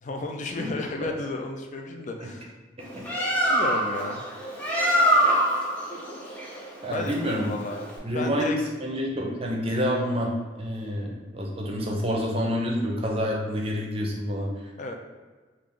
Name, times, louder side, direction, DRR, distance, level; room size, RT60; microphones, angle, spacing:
voice 1, 0.0-2.5 3.4-4.2 6.9-8.6 10.8-10.9 14.8-14.9, left 2 dB, 45° left, 3 dB, 0.4 m, -33 dB
Bird, 2.8-8.0, equal, 10° left, 0.8 m, -25 dB
voice 2, 6.8-7.5 8.0-10.3 10.6-14.5, equal, 35° right, -1 dB, 0.6 m, -28 dB
3.3 x 2.5 x 3.6 m, 1.4 s
head